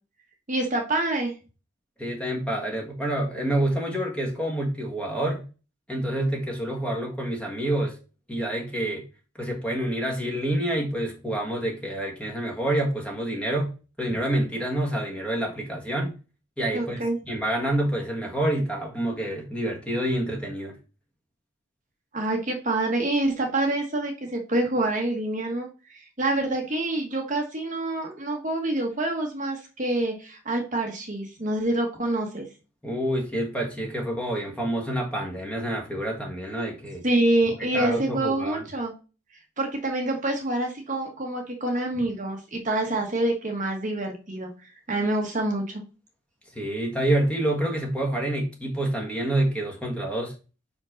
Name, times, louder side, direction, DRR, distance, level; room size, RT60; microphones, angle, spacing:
voice 1, 0.5-1.3 16.7-17.2 22.1-32.5 37.0-38.9 39.6-44.5 44.9-45.8, right 2 dB, 35° right, 2 dB, 1.3 m, -26 dB
voice 2, 2.0-5.4 5.9-8.0 8.3-9.0 9.4-13.7 14.0-16.2 16.6-20.8 32.8-37.0 37.6-38.6 46.5-50.3, right 1 dB, 5° left, 0 dB, 1.6 m, -27 dB
5.3 x 5.1 x 5.1 m, 0.33 s
head